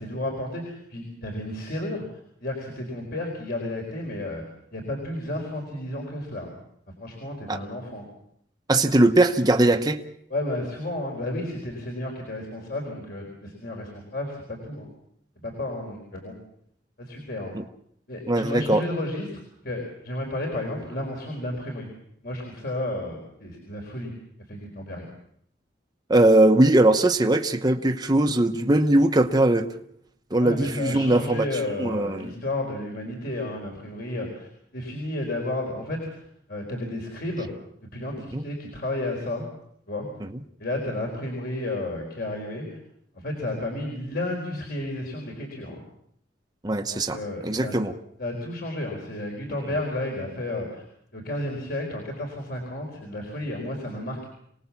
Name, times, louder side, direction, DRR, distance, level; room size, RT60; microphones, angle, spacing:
voice 1, 0.0-4.4 4.7-6.6 7.0-8.0 10.3-14.9 15.4-16.3 17.0-17.5 18.1-21.9 22.2-24.1 24.5-25.1 30.4-34.5 34.7-36.2 36.5-37.5 37.9-39.5 39.9-40.1 40.6-42.8 43.1-45.8 46.9-47.7 48.2-50.8 51.1-54.2, left 1 dB, 60° left, 1 dB, 4.6 m, -32 dB
voice 2, 8.7-10.0 17.5-17.6 18.3-18.8 26.1-29.7 30.3-31.4 31.8-32.3 38.3-38.4 46.6-47.2 47.4-47.9, right 1 dB, 20° right, 5 dB, 1.0 m, -20 dB
27.0 x 19.0 x 7.2 m, 0.70 s
head